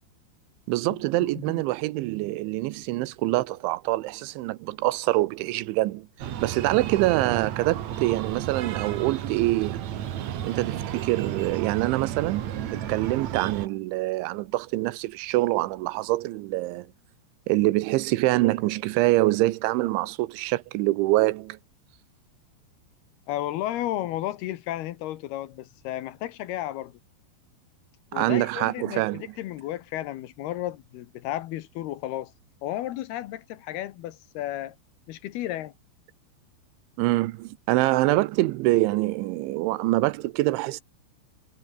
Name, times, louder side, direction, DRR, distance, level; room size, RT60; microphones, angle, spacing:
voice 1, 0.7-6.1 6.4-9.9 10.4-16.9 17.5-21.6 28.1-29.3 37.0-40.8, right 19 dB, 85° right, 3.3 m, -25 dB
Breathing, 6.2-13.7, right 10 dB, 60° right, 2.0 m, -33 dB
voice 2, 23.3-27.0 28.1-32.3 32.6-34.8 35.1-35.7, left 14 dB, 70° left, 2.7 m, -33 dB
omnidirectional pair, 5.3 m